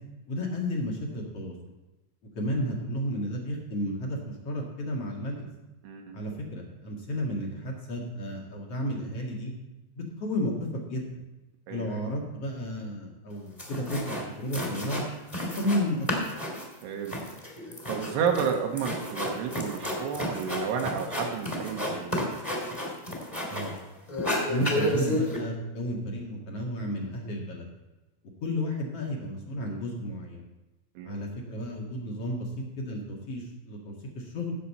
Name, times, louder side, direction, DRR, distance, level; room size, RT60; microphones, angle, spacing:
voice 1, 0.3-1.5 2.4-5.5 6.1-9.5 9.9-11.1 11.7-15.0 15.6-16.1 23.5-23.7 24.5-27.7 28.4-30.4 31.0-34.5, equal, 45° left, -1 dB, 2.3 m, -32 dB
voice 2, 5.8-6.1 11.7-11.9 16.8-17.2 17.9-22.2 31.0-31.2, right 7 dB, 80° right, 3 dB, 3.4 m, -31 dB
sound 1, 13.3-13.4 13.6-14.2 14.5-15.8 16.1-23.8 24.1-25.4, left 1 dB, 10° left, 2.0 m, -31 dB
17.0 x 7.6 x 4.3 m, 1.1 s
omnidirectional pair, 4.8 m